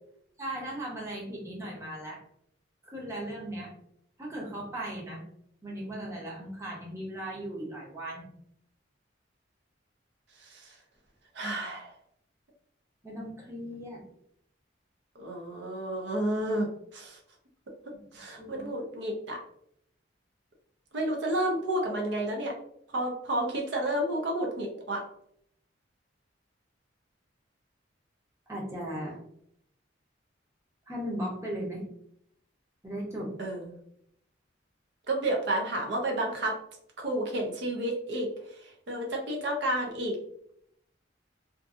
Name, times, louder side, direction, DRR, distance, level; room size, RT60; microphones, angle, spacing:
voice 1, 0.4-2.2 2.8-3.7 4.2-5.2 5.6-8.3 13.0-14.0 18.4-18.6 28.5-29.2 30.9-31.8 32.8-33.3, right 1 dB, 15° right, -4 dB, 0.7 m, -37 dB
voice 2, 10.4-10.7 11.3-11.9 15.2-16.7 16.9-17.2 18.1-19.4 20.9-22.5 22.9-25.0 33.4-33.7 35.1-36.5 37.0-38.3 38.9-40.2, right 1 dB, 60° right, 0 dB, 0.5 m, -30 dB
2.6 x 2.5 x 2.4 m, 0.71 s
head